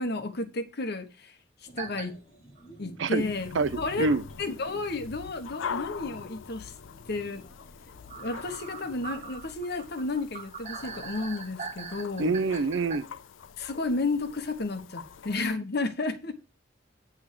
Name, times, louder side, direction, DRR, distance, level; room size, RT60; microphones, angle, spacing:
voice 1, 0.0-1.4 1.8-2.2 2.8-3.5 3.8-4.1 4.4-6.7 7.0-7.5 8.2-12.3 13.6-16.3, left 2 dB, 55° left, 1.2 m, -32 dB
sound 1, 1.6-9.4, equal, 30° left, 1.5 m, -54 dB
sound 2, 1.8-2.1 2.6-2.7 4.1-4.2 4.8-4.9 5.2-5.3 8.1-13.0, right 5 dB, 40° right, 1.2 m, -41 dB
sound 3, 3.2-15.6, left 6 dB, 80° left, 0.4 m, -43 dB
voice 2, 12.2-13.1, right 3 dB, 70° right, 0.5 m, -26 dB
9.5 x 3.6 x 6.7 m
head